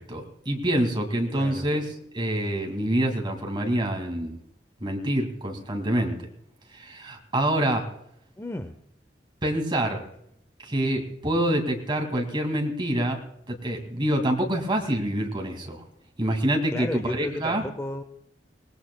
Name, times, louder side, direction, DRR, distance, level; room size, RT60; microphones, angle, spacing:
voice 1, 0.0-1.8 2.1-4.4 4.8-6.3 6.7-7.9 9.4-10.1 10.6-13.2 13.5-15.8 16.2-17.6, right 1 dB, 30° right, 3 dB, 2.2 m, -26 dB
voice 2, 1.3-1.7 8.4-8.7 16.7-18.0, left 1 dB, 15° left, 8 dB, 0.6 m, -33 dB
25.0 x 19.0 x 2.2 m, 0.73 s
head